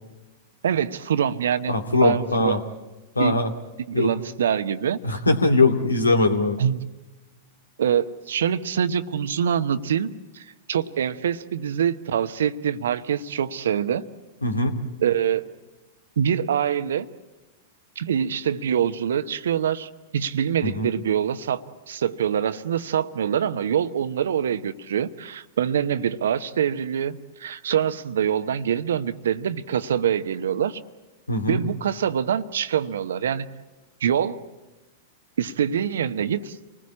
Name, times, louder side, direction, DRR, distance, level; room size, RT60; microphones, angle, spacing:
voice 1, 0.6-1.7 2.0-2.6 3.2-3.4 3.9-5.0 6.6-6.8 7.8-14.1 15.0-15.4 16.2-17.1 18.0-30.8 31.5-33.5 34.0-34.4 35.4-36.6, right 8 dB, 65° right, 13 dB, 1.0 m, -25 dB
voice 2, 1.7-2.6 3.2-3.5 3.9-4.1 5.0-6.6 14.4-14.8 20.6-20.9 31.3-31.6, left 2 dB, 85° left, 6 dB, 2.2 m, -21 dB
28.5 x 20.0 x 8.6 m, 1.2 s
figure-of-eight pair, 100°, 0 cm